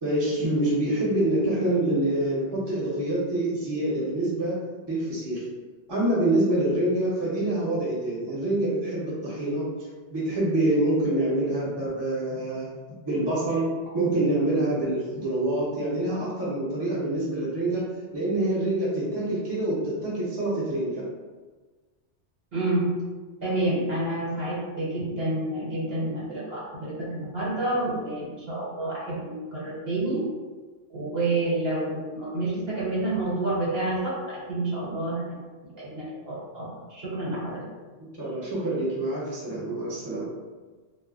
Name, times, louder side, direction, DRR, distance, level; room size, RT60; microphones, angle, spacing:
voice 1, 0.0-4.6 4.9-5.4 5.9-9.7 10.1-12.7 13.0-17.8 18.1-21.0 26.0-26.1 38.2-40.3, right 1 dB, 25° right, -7 dB, 0.8 m, -26 dB
voice 2, 22.5-22.9 23.4-30.2 30.9-35.2 35.7-36.6 36.9-37.6, right 2 dB, 60° right, -7 dB, 1.1 m, -29 dB
2.2 x 2.0 x 3.8 m, 1.3 s
omnidirectional pair, 1.2 m